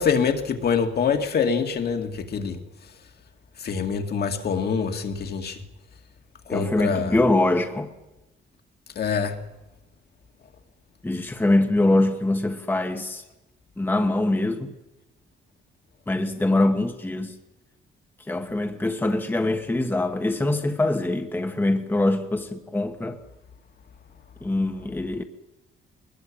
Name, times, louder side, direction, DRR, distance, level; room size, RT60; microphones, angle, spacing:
voice 1, 0.0-2.6 3.6-5.6 6.5-7.2 9.0-9.4, left 6 dB, 50° left, 2.4 m, -25 dB
voice 2, 6.5-7.9 11.0-13.2 13.8-14.7 16.1-17.3 18.3-23.2 24.4-25.2, left 2 dB, 10° left, 1.4 m, -23 dB
21.5 x 21.0 x 8.8 m
wide cardioid pair, 160°, 20 cm